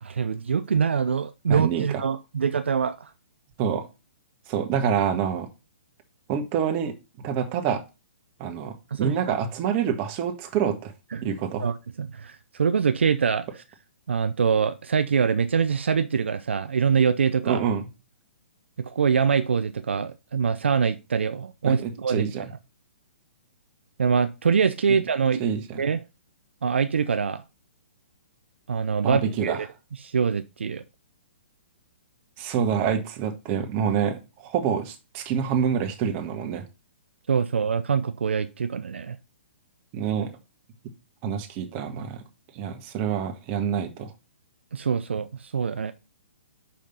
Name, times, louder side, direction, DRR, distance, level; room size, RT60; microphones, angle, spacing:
voice 1, 0.0-3.1 8.9-9.4 11.1-11.3 11.6-13.6 14.1-17.6 18.8-22.3 24.0-25.4 25.8-26.0 26.6-27.4 28.7-29.7 30.0-30.8 37.3-39.2 44.7-45.9, right 6 dB, 75° right, 0.6 m, -24 dB
voice 2, 1.5-1.8 3.6-3.8 4.5-5.5 6.3-7.8 8.4-10.9 11.2-11.6 17.4-17.8 21.6-22.4 25.4-25.8 29.0-29.6 32.4-36.6 39.9-40.3 41.2-42.2 42.5-44.1, right 7 dB, 35° right, 1.5 m, -27 dB
5.7 x 5.1 x 5.2 m
hypercardioid pair, 130°, 6 cm